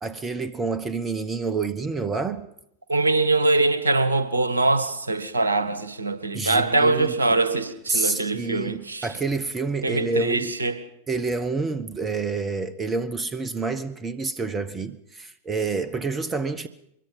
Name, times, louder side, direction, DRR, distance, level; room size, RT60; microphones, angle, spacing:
voice 1, 0.0-2.5 6.3-7.1 7.9-10.5 11.1-16.7, right 4 dB, 20° right, 1.1 m, -28 dB
voice 2, 2.9-9.1 9.8-10.8, right 2 dB, 75° right, 1.7 m, -23 dB
23.5 x 22.0 x 5.7 m
figure-of-eight pair, 90°, 0 cm